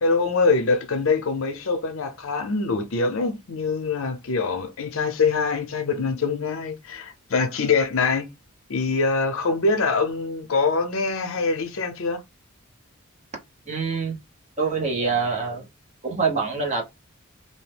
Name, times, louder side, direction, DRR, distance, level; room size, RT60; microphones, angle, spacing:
voice 1, 0.0-8.3 8.7-12.2, left 4 dB, 65° left, 0.6 m, -24 dB
voice 2, 13.7-14.2 14.6-15.7 16.0-16.9, right 4 dB, 35° right, 0.8 m, -25 dB
2.7 x 2.1 x 3.3 m
head